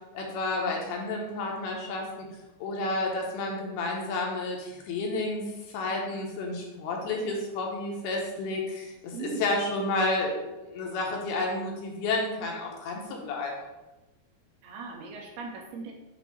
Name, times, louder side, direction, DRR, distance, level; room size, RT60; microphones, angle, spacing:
voice 1, 0.1-2.1 2.6-5.4 5.7-13.6, left 2 dB, 75° left, 0 dB, 2.5 m, -31 dB
voice 2, 9.1-9.5 14.6-15.9, right 4 dB, 80° right, 1 dB, 2.4 m, -38 dB
7.2 x 2.6 x 5.5 m, 1.1 s
omnidirectional pair, 4.9 m